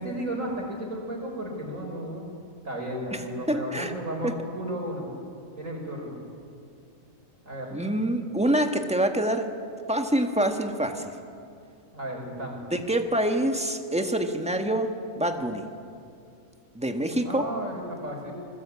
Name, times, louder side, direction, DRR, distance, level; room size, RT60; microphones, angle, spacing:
voice 1, 0.0-2.3 2.6-5.1 5.6-6.2 7.4-7.7 11.9-12.6 17.2-18.3, right 1 dB, 65° right, 0 dB, 5.9 m, -33 dB
voice 2, 3.1-3.9 4.2-4.3 7.7-9.5 9.9-11.1 12.7-15.7 16.7-17.5, right 1 dB, 5° right, 5 dB, 1.7 m, -26 dB
26.0 x 21.0 x 8.6 m, 2.4 s
omnidirectional pair, 1.5 m